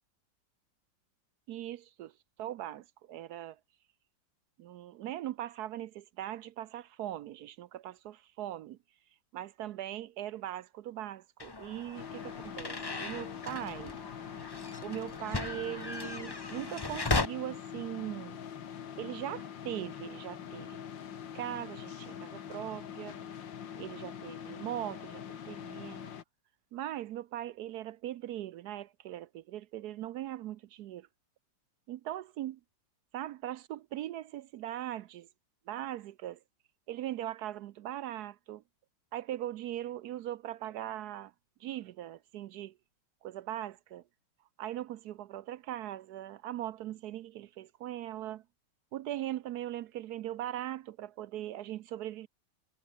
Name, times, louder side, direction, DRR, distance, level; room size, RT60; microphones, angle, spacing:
voice 1, 1.5-2.1 2.4-3.6 4.6-8.8 9.3-14.0 14.8-18.4 19.0-20.8 21.3-23.2 23.8-26.1 26.7-31.1 31.9-32.6 33.1-35.3 35.7-36.4 36.9-38.6 39.1-41.3 41.6-42.7 43.2-44.0 44.6-48.4 48.9-52.3, right 13 dB, 70° right, 1.0 m, -40 dB
sound 1, 11.4-17.3, left 3 dB, 20° left, 0.6 m, -37 dB
sound 2, 11.9-26.2, left 8 dB, 80° left, 2.2 m, -44 dB
omnidirectional pair, 2.0 m